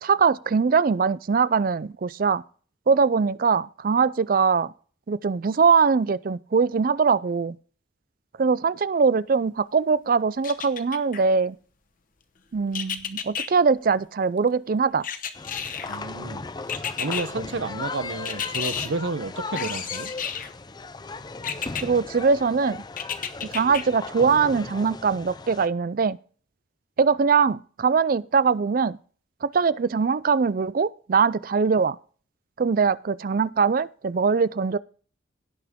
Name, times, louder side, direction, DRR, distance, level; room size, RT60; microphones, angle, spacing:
voice 1, 0.0-2.4 2.9-4.7 5.1-7.6 8.4-11.6 12.5-15.0 21.8-22.8 23.4-26.2 27.0-29.0 29.4-32.0 32.6-34.8, right 5 dB, 45° right, 0.4 m, -22 dB
sound 1, 10.4-11.2 12.7-13.5 15.0-16.0 16.7-17.2 18.3-18.9 19.6-20.5 21.4-21.8 23.0-23.8 24.3-24.4, left 8 dB, 45° left, 0.9 m, -31 dB
sound 2, 15.3-25.7, left 3 dB, 20° left, 0.4 m, -37 dB
voice 2, 15.9-16.4 17.0-20.1, right 3 dB, 75° right, 0.8 m, -31 dB
17.0 x 5.9 x 3.6 m
head